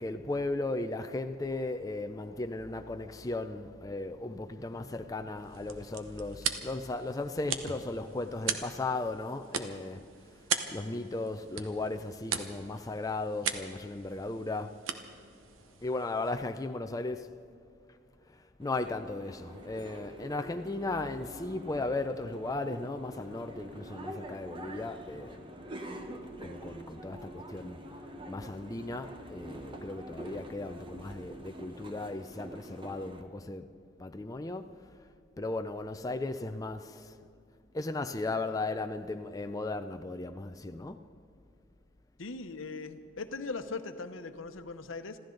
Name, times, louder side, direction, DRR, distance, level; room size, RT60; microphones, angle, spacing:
voice 1, 0.0-10.0 10.4-14.8 15.8-17.3 18.3-25.4 26.4-27.8 28.3-33.7 34.0-34.8 35.4-37.2 37.7-41.1, left 2 dB, 20° left, 0.4 m, -36 dB
sound 1, 5.4-16.6, right 7 dB, 90° right, 1.0 m, -39 dB
sound 2, 18.6-33.2, right 1 dB, 25° right, 1.0 m, -46 dB
voice 2, 42.2-45.2, left 3 dB, 85° left, 0.9 m, -39 dB
26.0 x 14.5 x 3.9 m
head